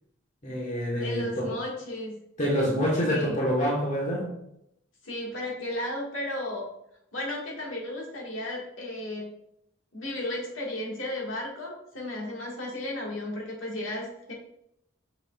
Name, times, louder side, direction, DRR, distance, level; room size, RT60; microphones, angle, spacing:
voice 1, 0.4-1.6 2.4-4.3, equal, 35° left, -3 dB, 1.4 m, -26 dB
voice 2, 1.0-2.2 3.1-3.4 5.0-6.6 7.1-9.3 9.9-14.3, left 1 dB, 75° left, -3 dB, 1.9 m, -34 dB
6.4 x 6.2 x 2.4 m, 0.77 s
head